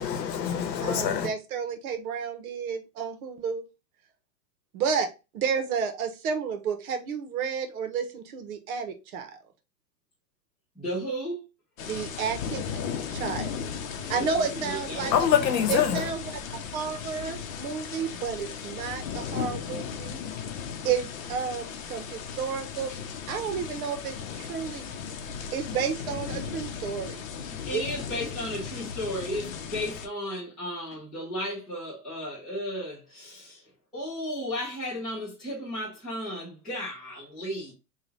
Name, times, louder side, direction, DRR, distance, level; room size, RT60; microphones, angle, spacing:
voice 1, 0.0-1.3 15.0-16.1, left 9 dB, 85° left, 1.0 m, -25 dB
voice 2, 0.8-3.6 4.7-5.1 5.3-9.4 11.8-12.6 13.1-13.7 14.1-15.1 15.7-16.2 16.5-20.2 20.8-23.0 23.3-24.9 25.5-27.3 27.7-27.8, right 6 dB, 60° right, 0.9 m, -31 dB
voice 3, 10.7-11.4 14.1-15.2 27.5-33.6 33.9-37.7, equal, ahead, 0.3 m, -34 dB
sound 1, 11.8-30.1, left 7 dB, 55° left, 0.7 m, -36 dB
3.2 x 2.3 x 4.0 m
hypercardioid pair, 140°, 49 cm